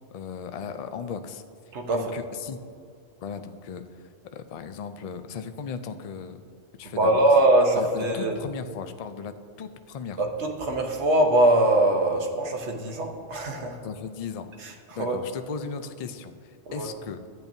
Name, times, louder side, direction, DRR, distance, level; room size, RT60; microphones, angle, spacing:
voice 1, 0.1-1.4 1.9-2.6 3.2-6.5 6.8-7.2 7.7-10.2 13.8-14.5 14.9-17.2, left 6 dB, 55° left, 9 dB, 0.4 m, -36 dB
voice 2, 1.7-2.1 7.0-8.4 10.2-13.8 15.0-15.2 16.7-16.9, right 1 dB, 80° right, 2 dB, 1.3 m, -22 dB
13.0 x 8.7 x 2.7 m, 2.2 s
omnidirectional pair, 1.2 m